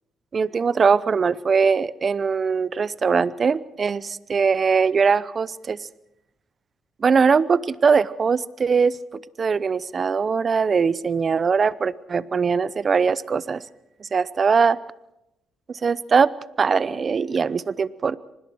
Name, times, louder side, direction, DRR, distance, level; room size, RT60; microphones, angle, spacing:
voice 1, 0.3-5.9 7.0-13.6 14.0-14.8 15.7-16.3 16.6-18.2, right 5 dB, 40° right, 18 dB, 0.8 m, -21 dB
24.5 x 20.0 x 6.3 m, 0.88 s
cardioid pair, 90°, 0 cm